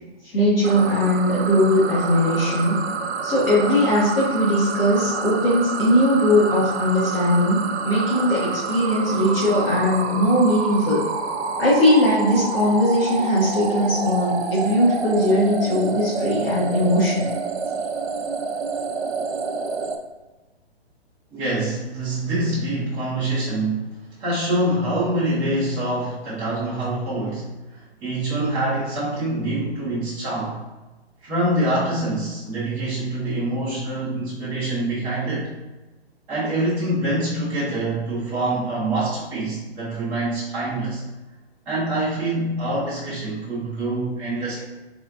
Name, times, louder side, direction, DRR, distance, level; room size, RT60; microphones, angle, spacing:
voice 1, 0.2-2.8 3.2-11.0 11.6-17.3, left 1 dB, 60° left, -7 dB, 1.2 m, -19 dB
sound 1, 0.6-20.0, right 5 dB, 75° right, 0.5 m, -28 dB
voice 2, 21.3-23.9 24.2-30.6 31.2-35.5 36.3-41.0 41.7-44.6, right 1 dB, 5° right, -10 dB, 0.4 m, -25 dB
3.4 x 2.4 x 2.5 m, 1.1 s
figure-of-eight pair, 125°, 33 cm